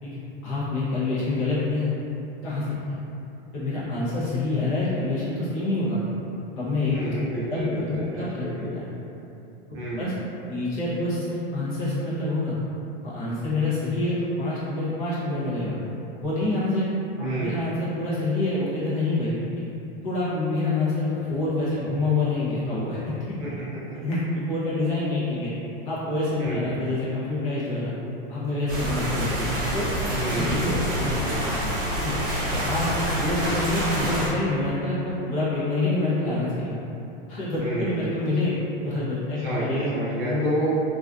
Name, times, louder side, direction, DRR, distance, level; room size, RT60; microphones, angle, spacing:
voice 1, 0.0-1.9 2.4-3.0 3.5-6.0 6.5-7.1 7.5-8.9 10.0-10.1 10.5-12.6 13.0-15.8 16.2-16.9 17.2-19.4 20.0-23.4 24.0-24.2 24.5-25.5 25.8-27.9 28.3-31.2 31.9-32.1 32.5-36.8 37.3-38.5 38.8-39.9 40.3-40.4, left 2 dB, 35° left, -10 dB, 0.7 m, -27 dB
voice 2, 6.9-8.7 9.7-10.3 17.2-17.6 23.4-23.5 26.4-26.9 30.2-31.7 37.6-38.2 39.4-40.8, right 2 dB, 35° right, -10 dB, 0.4 m, -30 dB
sound 1, 28.7-34.3, equal, 60° right, 1.0 m, -27 dB
2.4 x 2.4 x 2.3 m, 2.8 s
supercardioid pair, 175°, 30 cm